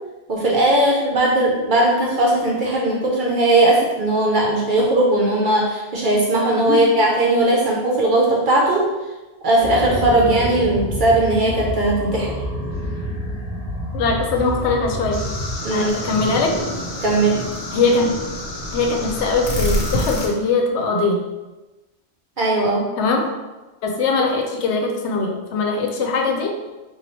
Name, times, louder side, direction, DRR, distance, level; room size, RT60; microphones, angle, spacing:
voice 1, 0.3-8.9 9.4-12.4 15.6-15.9 17.0-17.4 22.4-22.9, right 1 dB, 55° right, -3 dB, 0.6 m, -18 dB
sound 1, 9.6-15.6, equal, 30° left, 0.9 m, -27 dB
voice 2, 13.9-15.2 15.7-16.5 17.7-18.1 18.7-21.2 23.0-23.2 23.8-26.5, left 3 dB, 75° left, 2 dB, 0.8 m, -21 dB
sound 2, 15.1-20.3, left 1 dB, 50° left, 0.5 m, -27 dB
2.9 x 2.3 x 4.0 m, 1.1 s
omnidirectional pair, 1.2 m